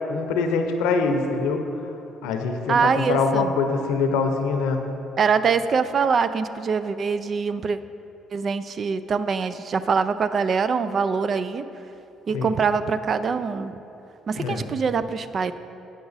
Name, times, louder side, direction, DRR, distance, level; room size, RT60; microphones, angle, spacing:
voice 1, 0.1-1.6 2.2-4.8 12.3-12.5 14.3-14.6, left 4 dB, 85° left, 5 dB, 0.6 m, -24 dB
voice 2, 2.7-3.5 5.2-7.8 8.3-11.6 12.3-13.8 14.3-15.5, right 5 dB, 50° right, 12 dB, 0.4 m, -23 dB
8.6 x 5.8 x 4.0 m, 2.8 s
supercardioid pair, 65°, 0 cm